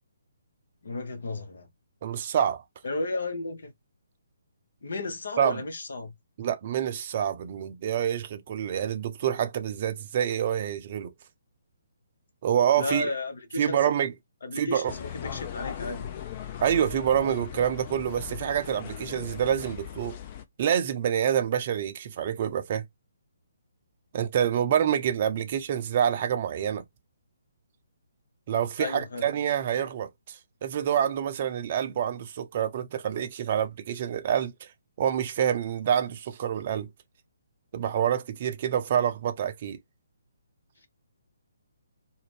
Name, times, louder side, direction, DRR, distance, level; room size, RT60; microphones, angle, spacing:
voice 1, 0.8-1.7 2.8-3.7 4.8-6.1 12.8-13.8 14.4-16.1 28.8-29.3, left 2 dB, 65° left, 0.8 m, -33 dB
voice 2, 2.0-2.6 5.4-5.6 6.4-11.1 12.4-13.1 13.6-14.1 14.6-14.9 16.6-20.2 20.6-22.8 24.1-26.8 28.5-30.4 30.6-34.7 35.0-36.9 37.7-39.8, right 9 dB, 40° right, 0.5 m, -27 dB
sound 1, 14.9-20.4, left 10 dB, 35° left, 0.5 m, -39 dB
2.5 x 2.1 x 3.2 m
figure-of-eight pair, 135°, 0 cm